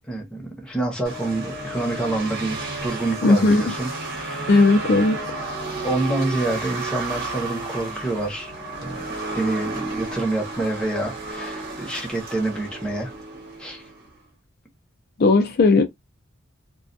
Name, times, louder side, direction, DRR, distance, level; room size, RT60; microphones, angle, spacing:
voice 1, 0.1-4.5 5.8-8.5 8.8-9.0 9.4-13.1 13.6-13.8, right 2 dB, 5° left, 0.7 m, -27 dB
sound 1, 1.0-14.1, right 2 dB, 50° right, 1.0 m, -32 dB
voice 2, 3.2-3.6 4.5-5.2 15.2-15.8, left 3 dB, 50° left, 0.4 m, -16 dB
2.2 x 2.1 x 2.6 m
head